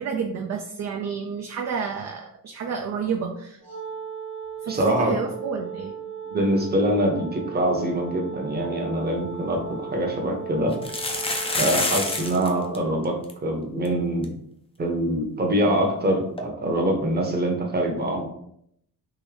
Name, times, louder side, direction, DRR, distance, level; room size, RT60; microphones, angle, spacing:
voice 1, 0.0-3.8 4.6-5.9, right 6 dB, 45° right, 3 dB, 0.4 m, -30 dB
Wind instrument woodwind instrument, 3.6-12.8, right 7 dB, 75° right, 1.0 m, -37 dB
voice 2, 4.7-5.2 6.3-10.7 11.5-14.3 14.8-18.3, right 1 dB, 25° right, 2 dB, 0.8 m, -24 dB
sound 1, 9.1-9.2 9.5-9.6 10.7-12.5 12.7-12.8 13.0-13.3 13.8-13.9 14.2-14.3 16.4-16.5, left 2 dB, 15° left, 0.5 m, -27 dB
3.6 x 2.6 x 3.3 m, 0.71 s
cardioid pair, 115°, 39 cm